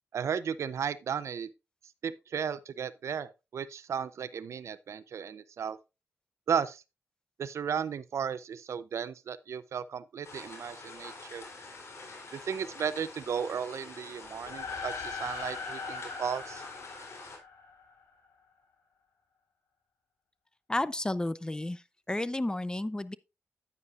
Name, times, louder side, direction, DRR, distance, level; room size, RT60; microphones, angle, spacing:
voice 1, 0.1-1.5 2.0-5.8 6.5-6.8 7.4-11.4 12.3-16.6, right 7 dB, 65° right, 0.5 m, -35 dB
sound 1, 10.2-17.4, left 3 dB, 60° left, 3.4 m, -47 dB
sound 2, 14.3-18.0, left 5 dB, 75° left, 3.1 m, -40 dB
voice 2, 20.7-23.2, left 1 dB, 15° left, 0.6 m, -32 dB
9.6 x 9.5 x 2.5 m
cardioid pair, 55°, 5 cm